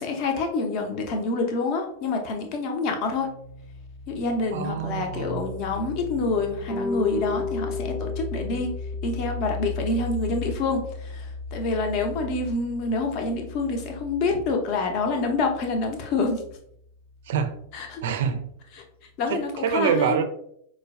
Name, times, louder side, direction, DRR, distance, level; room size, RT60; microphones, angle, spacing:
voice 1, 0.0-3.3 4.1-8.7 9.0-16.4 17.7-18.0 18.7-18.8 19.2-20.2, left 3 dB, 40° left, 3 dB, 0.6 m, -27 dB
sound 1, 3.1-18.5, left 3 dB, 85° left, 0.7 m, -37 dB
voice 2, 4.5-5.5 17.3-17.6 18.0-18.4 19.3-20.2, right 7 dB, 55° right, 7 dB, 0.4 m, -26 dB
sound 2, 6.7-9.3, left 5 dB, ahead, 0.6 m, -32 dB
4.4 x 2.1 x 2.4 m, 0.69 s
figure-of-eight pair, 90°, 0 cm